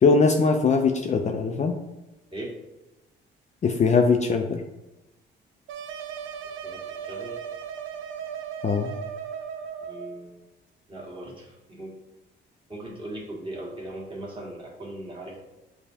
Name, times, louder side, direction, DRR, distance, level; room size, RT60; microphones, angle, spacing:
voice 1, 0.0-1.8 3.6-4.6 8.6-8.9, left 4 dB, 35° left, 4 dB, 0.4 m, -21 dB
sound 1, 5.7-10.2, right 7 dB, 80° right, 0.4 m, -36 dB
voice 2, 6.6-7.4 9.8-10.5 10.9-11.9 12.7-15.4, right 1 dB, 25° right, -4 dB, 1.5 m, -39 dB
6.8 x 2.3 x 2.7 m, 1.0 s
cardioid pair, 90°, 20 cm